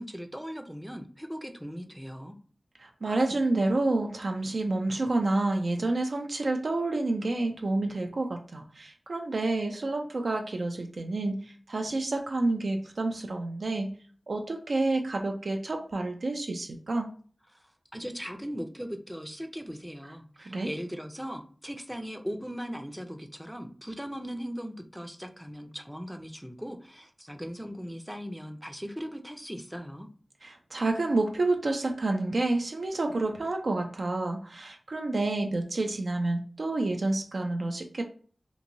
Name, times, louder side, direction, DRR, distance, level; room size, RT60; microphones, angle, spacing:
voice 1, 0.0-2.4 17.5-17.7 17.9-30.1, equal, 5° right, 5 dB, 0.5 m, -39 dB
voice 2, 2.8-13.9 14.3-17.1 20.4-20.7 30.4-38.0, right 2 dB, 70° right, 3 dB, 0.4 m, -29 dB
2.9 x 2.6 x 2.6 m, 0.43 s
wide cardioid pair, 70°, 0 cm